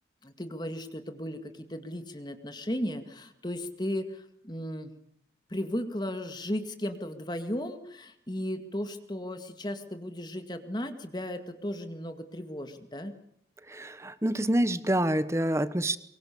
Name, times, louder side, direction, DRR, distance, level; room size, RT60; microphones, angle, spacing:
voice 1, 0.2-4.9 5.5-13.1, left 1 dB, 25° left, 8 dB, 2.0 m, -35 dB
voice 2, 13.7-16.0, right 1 dB, 15° right, 14 dB, 1.1 m, -27 dB
24.5 x 23.0 x 6.9 m, 0.69 s
head